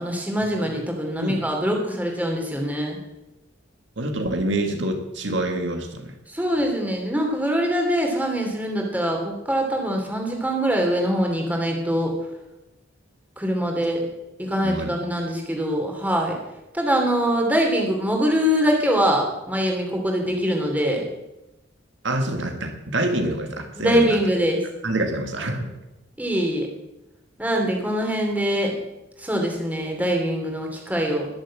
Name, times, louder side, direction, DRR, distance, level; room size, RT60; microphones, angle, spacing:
voice 1, 0.0-3.0 6.3-12.1 13.4-14.1 14.4-16.3 16.7-21.0 23.8-24.6 26.2-26.7 27.4-28.7 29.2-31.3, equal, 10° right, 1 dB, 2.9 m, -23 dB
voice 2, 4.0-6.2 14.6-14.9 22.0-24.2 24.8-25.7, right 1 dB, 70° right, 4 dB, 2.0 m, -26 dB
21.5 x 7.4 x 7.4 m, 0.95 s
head